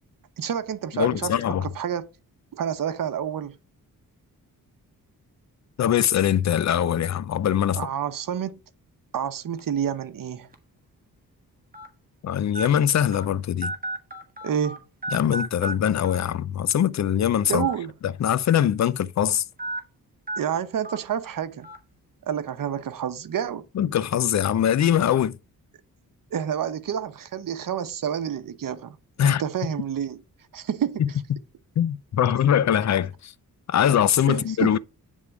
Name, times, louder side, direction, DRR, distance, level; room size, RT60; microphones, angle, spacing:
voice 1, 0.4-1.3 1.6-2.1 2.5-3.6 7.7-8.6 9.1-10.5 14.4-14.8 17.5-17.9 20.4-21.7 22.2-23.6 26.3-29.0 29.2-30.2 30.5-31.2 34.3-34.7, right 8 dB, 65° right, 0.9 m, -29 dB
voice 2, 0.9-1.6 5.8-7.9 12.2-13.7 15.1-17.7 18.2-19.4 23.8-25.4 29.2-29.4 31.0-31.4 31.8-33.3 33.7-34.8, left 10 dB, 50° left, 0.5 m, -22 dB
sound 1, 9.6-9.8 10.5-10.6 11.7-11.9 12.5-12.7 13.1-13.2 13.6-14.8 15.0-15.7 16.0-16.2 17.4-17.7 18.1-18.2 19.6-19.8 20.3-20.4 20.8-21.0 21.6-21.8, right 2 dB, 25° right, 1.4 m, -32 dB
9.3 x 3.6 x 4.7 m
cardioid pair, 100°, 36 cm